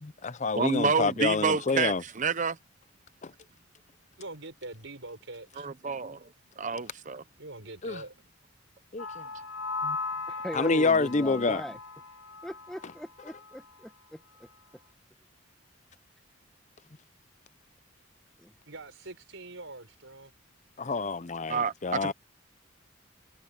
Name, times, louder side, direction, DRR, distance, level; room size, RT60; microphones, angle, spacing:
voice 1, 0.0-2.0 3.2-3.3 7.8-8.0 8.9-9.2 9.8-10.0 10.5-11.6 20.8-22.1, left 3 dB, 35° left, 0.6 m, -28 dB
voice 2, 0.5-2.6 5.6-6.3 6.6-7.2 21.5-22.1, right 5 dB, 40° right, 0.7 m, -29 dB
voice 3, 4.2-5.7 7.4-8.1 18.7-20.3, right 2 dB, 70° right, 5.3 m, -44 dB
sound 1, 9.0-13.0 13.3-13.6, left 4 dB, 80° left, 1.0 m, -37 dB
voice 4, 10.3-11.8 12.4-14.5 18.4-18.5, equal, 5° left, 1.4 m, -40 dB
head